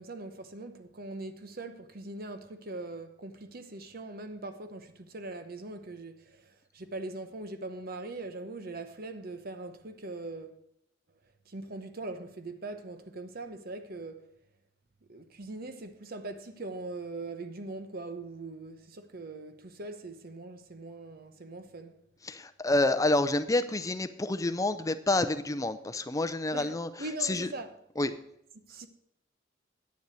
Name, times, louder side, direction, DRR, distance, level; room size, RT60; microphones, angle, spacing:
voice 1, 0.0-10.6 11.5-14.3 15.1-22.0 26.5-27.8 28.6-28.9, right 2 dB, 50° right, 1.0 m, -41 dB
voice 2, 22.2-26.9 27.2-27.5 28.0-28.1, left 2 dB, 15° left, 0.6 m, -28 dB
9.6 x 7.0 x 6.2 m
head